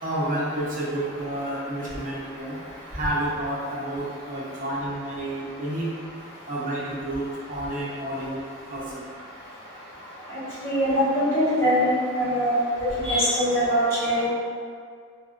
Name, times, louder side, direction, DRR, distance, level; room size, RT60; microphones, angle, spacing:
voice 1, 0.0-2.6 2.9-5.9 6.5-8.4 8.7-9.0, right 1 dB, 45° right, -7 dB, 0.7 m, -30 dB
voice 2, 10.3-12.6 13.0-14.3, equal, 30° left, -14 dB, 1.3 m, -22 dB
3.5 x 2.3 x 2.5 m, 2.1 s
head